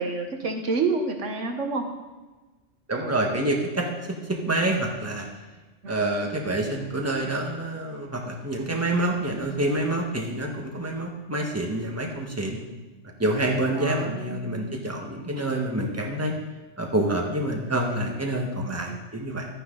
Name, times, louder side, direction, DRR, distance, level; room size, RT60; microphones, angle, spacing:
voice 1, 0.0-1.8 5.8-6.0 13.7-14.6 18.8-19.0, right 4 dB, 85° right, 4 dB, 1.5 m, -29 dB
voice 2, 2.9-5.3 5.9-12.6 13.2-16.3 16.8-19.5, right 1 dB, 10° right, 1 dB, 1.4 m, -27 dB
12.0 x 9.7 x 3.9 m, 1.2 s
omnidirectional pair, 1.2 m